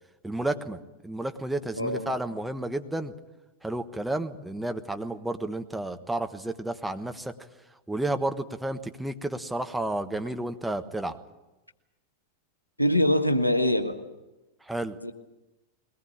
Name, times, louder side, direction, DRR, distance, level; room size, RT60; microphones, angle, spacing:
voice 1, 0.2-3.1 3.6-7.3 7.9-11.2 14.6-15.0, right 1 dB, 5° right, 7 dB, 1.3 m, -31 dB
voice 2, 1.7-2.1 12.8-14.0 14.9-15.1, left 1 dB, 85° left, 8 dB, 1.4 m, -24 dB
21.5 x 19.0 x 8.8 m, 1.0 s
figure-of-eight pair, 90°, 0 cm